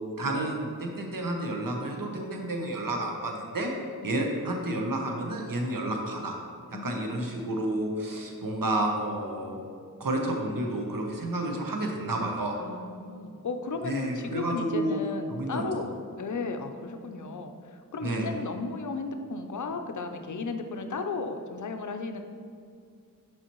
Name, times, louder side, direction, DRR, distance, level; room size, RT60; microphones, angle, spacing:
voice 1, 0.2-3.7 4.0-6.4 6.8-9.6 10.0-12.6 13.8-15.0 15.3-15.8 18.0-18.3, right 1 dB, 75° right, 2 dB, 0.8 m, -30 dB
voice 2, 6.7-7.3 12.6-22.2, left 3 dB, 60° left, 6 dB, 0.5 m, -35 dB
7.1 x 4.8 x 3.0 m, 2.3 s
wide cardioid pair, 65°, 33 cm